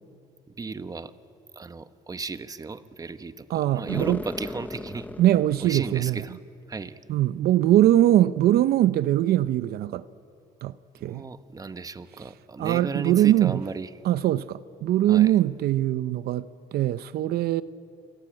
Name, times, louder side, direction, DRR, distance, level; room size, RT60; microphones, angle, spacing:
voice 1, 0.5-1.1 1.5-5.1 5.6-6.4 6.7-7.0 11.0-13.9 15.1-15.3, right 4 dB, 20° right, 1.1 m, -35 dB
voice 2, 3.5-4.2 5.2-6.2 7.1-10.0 10.6-10.7 11.0-11.2 12.6-13.6 14.0-17.6, right 13 dB, 70° right, 0.6 m, -22 dB
sound 1, 3.9-6.2, left 2 dB, 10° left, 0.6 m, -37 dB
28.0 x 23.0 x 9.0 m
cardioid pair, 110°, 17 cm